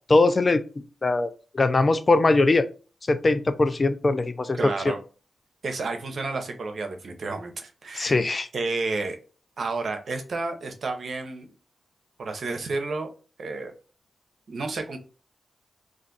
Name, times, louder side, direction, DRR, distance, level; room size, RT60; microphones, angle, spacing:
voice 1, 0.1-0.6 1.0-2.7 3.1-4.6 4.9-5.0 7.9-8.5, left 2 dB, 45° left, 11 dB, 0.4 m, -21 dB
voice 2, 4.5-5.0 5.6-8.2 8.5-9.2 9.6-11.5 12.2-13.1 13.4-13.7 14.5-15.0, right 3 dB, 70° right, 5 dB, 0.7 m, -31 dB
2.5 x 2.4 x 3.8 m, 0.35 s
cardioid pair, 45°, 0 cm